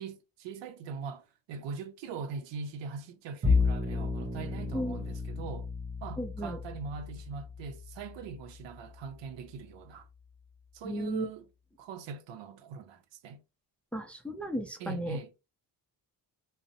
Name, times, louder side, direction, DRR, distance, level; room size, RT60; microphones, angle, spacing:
voice 1, 0.0-5.7 6.0-10.1 10.7-11.5 11.8-13.4 14.8-15.3, right 5 dB, 85° right, 0.6 m, -41 dB
Bowed string instrument, 3.4-9.9, left 4 dB, 30° right, 0.8 m, -33 dB
voice 2, 6.2-6.6 10.8-11.3 13.9-15.4, equal, 5° left, 0.3 m, -35 dB
2.5 x 2.0 x 2.6 m
cardioid pair, 90°, 43 cm